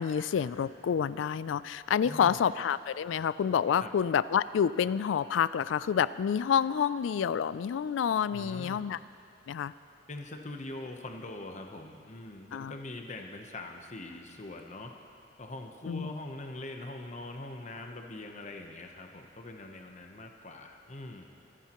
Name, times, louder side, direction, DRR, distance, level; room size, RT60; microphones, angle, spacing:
voice 1, 0.0-9.0 9.5-9.7 12.5-12.7 15.9-16.1, left 8 dB, 80° left, 17 dB, 0.3 m, -28 dB
voice 2, 2.0-2.5 3.8-3.9 8.3-8.9 10.1-14.9 15.4-21.3, left 2 dB, 40° left, 4 dB, 0.9 m, -43 dB
25.0 x 10.0 x 3.0 m, 2.4 s
head